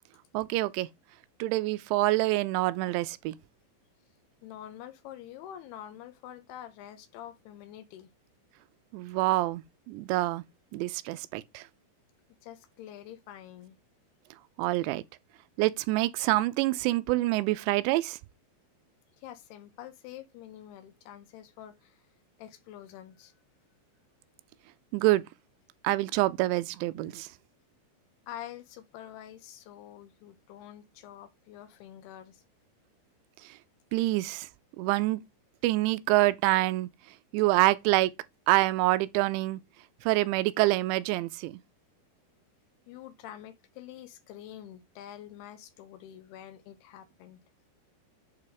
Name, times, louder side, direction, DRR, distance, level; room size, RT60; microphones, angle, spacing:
voice 1, 0.3-0.9 1.4-3.4 8.9-10.4 10.7-11.7 14.6-15.0 15.6-18.2 24.9-25.2 25.8-27.3 33.9-34.5 34.8-35.2 35.6-36.9 37.3-38.1 38.5-39.6 40.0-41.6, right 18 dB, 90° right, 2.8 m, -26 dB
voice 2, 4.4-8.1 12.4-13.8 19.2-22.1 22.4-23.4 28.3-32.4 42.9-47.4, left 11 dB, 80° left, 2.6 m, -46 dB
7.9 x 3.0 x 4.8 m
omnidirectional pair, 5.0 m